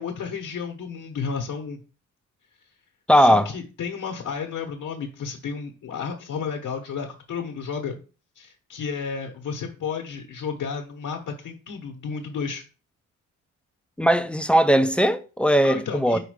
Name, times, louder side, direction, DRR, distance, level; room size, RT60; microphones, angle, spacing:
voice 1, 0.0-1.8 3.1-8.0 8.3-12.6 15.6-16.2, left 6 dB, 70° left, 1.1 m, -32 dB
voice 2, 3.1-3.5 14.0-16.2, equal, 5° left, 0.4 m, -19 dB
5.0 x 4.3 x 4.9 m
cardioid pair, 140°, 32 cm